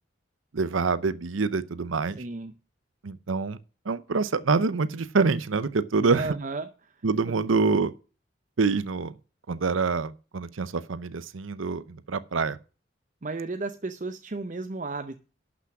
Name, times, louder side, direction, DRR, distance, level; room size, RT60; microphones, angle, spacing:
voice 1, 0.5-2.2 3.0-3.6 3.9-6.3 7.0-7.9 8.6-9.1 9.5-12.6, right 4 dB, 85° right, 0.7 m, -26 dB
voice 2, 2.2-2.5 6.1-6.7 13.2-15.2, right 3 dB, 40° right, 0.6 m, -33 dB
12.0 x 6.0 x 5.9 m
head